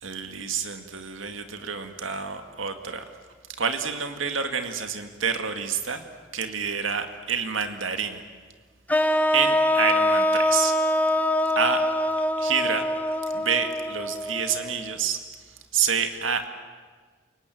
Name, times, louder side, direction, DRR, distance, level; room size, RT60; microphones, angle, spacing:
voice 1, 0.0-3.0 3.6-6.1 6.3-8.2 9.3-10.8 11.6-11.8 12.4-12.8 13.3-15.2 15.7-16.5, right 6 dB, 75° right, 7 dB, 2.0 m, -28 dB
sound 1, 8.9-15.0, left 1 dB, 10° left, 1.0 m, -24 dB
29.5 x 18.5 x 9.2 m, 1.5 s
head